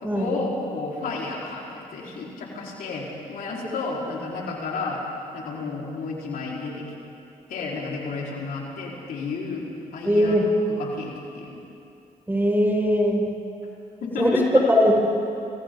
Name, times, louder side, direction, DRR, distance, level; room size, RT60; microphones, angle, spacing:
voice 1, 0.0-5.0 5.3-6.9 7.5-9.7 9.9-10.4 10.8-11.6 14.0-14.4, left 4 dB, 75° left, -4 dB, 4.8 m, -31 dB
voice 2, 10.0-10.4 12.3-13.3 14.2-14.3 14.7-15.0, equal, 15° right, -2 dB, 7.5 m, -20 dB
29.5 x 29.0 x 4.0 m, 2.6 s
supercardioid pair, 55°, 15 cm